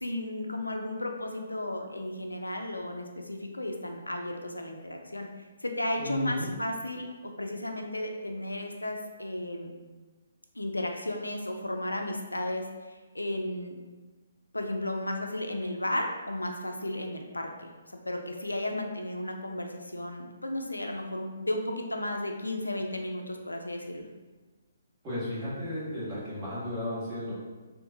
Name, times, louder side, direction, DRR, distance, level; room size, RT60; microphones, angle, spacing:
voice 1, 0.0-5.3 5.6-9.7 10.6-13.8 14.5-17.7 18.1-24.1, left 1 dB, 80° left, 3 dB, 0.3 m, -34 dB
voice 2, 6.0-6.5 25.0-27.3, left 1 dB, 20° right, -11 dB, 1.4 m, -34 dB
3.5 x 2.5 x 2.6 m, 1.3 s
figure-of-eight pair, 130°, 0 cm